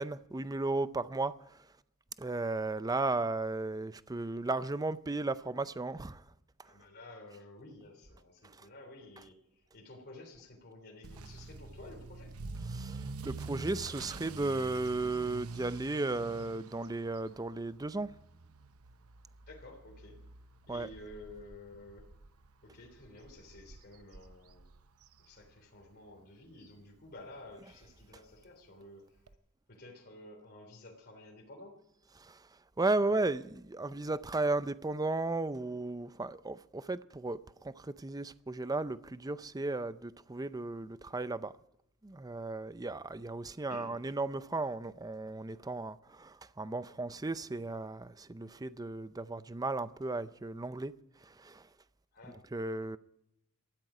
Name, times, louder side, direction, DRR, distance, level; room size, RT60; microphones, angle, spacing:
voice 1, 0.0-1.6 2.2-6.2 8.4-8.7 12.7-18.1 20.7-20.9 32.2-32.5 32.8-41.5 42.0-50.9 51.2-51.7 52.5-53.0, right 2 dB, 15° right, 0.5 m, -35 dB
voice 2, 6.6-12.3 19.5-20.2 20.7-22.1 22.6-24.7 25.2-29.2 29.7-31.8 43.7-43.9 52.1-52.4, left 2 dB, 45° left, 3.2 m, -52 dB
Motor vehicle (road) / Accelerating revving vroom, 11.0-25.9 26.2-26.6 27.1-27.2 27.5-27.6 27.9-28.0 29.3-29.4, right 3 dB, 70° right, 0.8 m, -47 dB
19.0 x 13.5 x 5.0 m
head